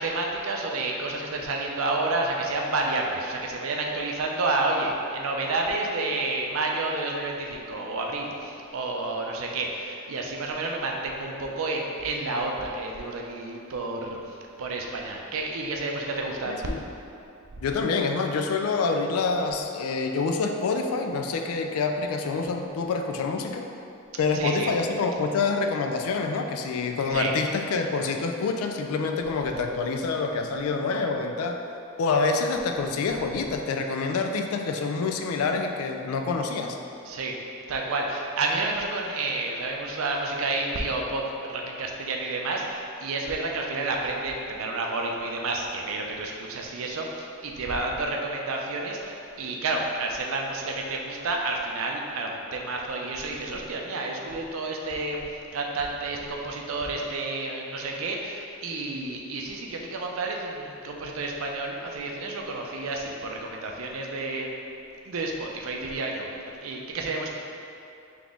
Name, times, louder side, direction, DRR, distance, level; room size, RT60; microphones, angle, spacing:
voice 1, 0.0-14.2 14.6-16.5 24.3-24.7 27.1-27.4 37.1-37.4 37.7-64.5 65.0-66.3 66.6-67.3, right 2 dB, 70° right, 1 dB, 0.5 m, -30 dB
voice 2, 16.5-16.8 17.6-23.7 24.2-31.6 32.0-36.8, left 4 dB, 85° left, 4 dB, 0.4 m, -27 dB
3.9 x 2.9 x 3.6 m, 2.7 s
head